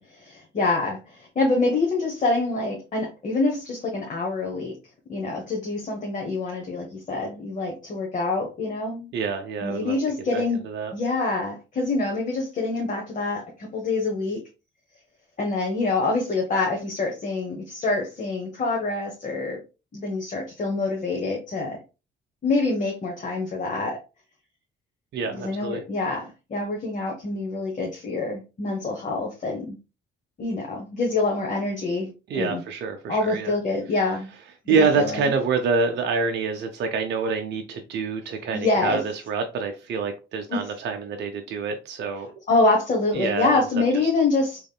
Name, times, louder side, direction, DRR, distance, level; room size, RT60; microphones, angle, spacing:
voice 1, 0.0-4.7 5.1-9.1 9.6-10.6 10.9-14.4 15.4-19.6 19.9-21.8 22.4-24.0 25.3-29.8 30.4-32.1 32.3-32.6 33.1-34.3 34.6-35.3 38.5-39.0 40.5-40.6 42.5-44.6, left 3 dB, 40° left, 1.0 m, -26 dB
voice 2, 9.1-10.0 10.3-10.9 25.1-25.8 32.3-33.5 34.7-39.0 39.3-42.3 43.1-43.6, right 5 dB, 60° right, 0.5 m, -26 dB
3.4 x 3.0 x 2.2 m
cardioid pair, 90°, 20 cm